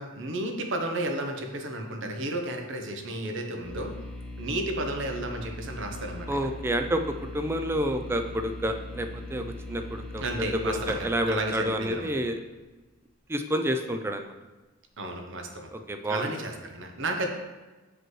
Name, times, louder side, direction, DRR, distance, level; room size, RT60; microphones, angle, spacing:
voice 1, 0.0-3.9 4.4-6.5 10.2-12.1 15.0-15.7 16.1-17.3, right 1 dB, 60° right, 4 dB, 0.9 m, -32 dB
sound 1, 3.6-12.5, left 1 dB, 5° left, 1.2 m, -40 dB
voice 2, 6.3-10.2 10.6-12.4 13.3-14.3 15.7-16.3, equal, 10° right, 6 dB, 0.4 m, -29 dB
7.6 x 5.0 x 3.2 m, 1.2 s
head